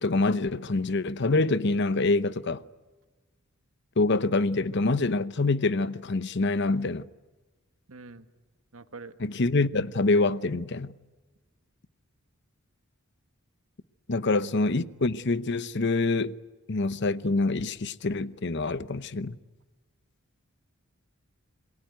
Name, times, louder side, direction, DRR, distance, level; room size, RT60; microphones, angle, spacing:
voice 1, 0.0-2.6 4.0-7.1 9.2-10.9 14.1-16.3 16.7-19.4, left 3 dB, 55° left, 0.8 m, -26 dB
voice 2, 7.9-8.3 8.7-9.1 14.1-14.5, right 3 dB, 80° right, 1.4 m, -46 dB
28.0 x 22.0 x 9.3 m
head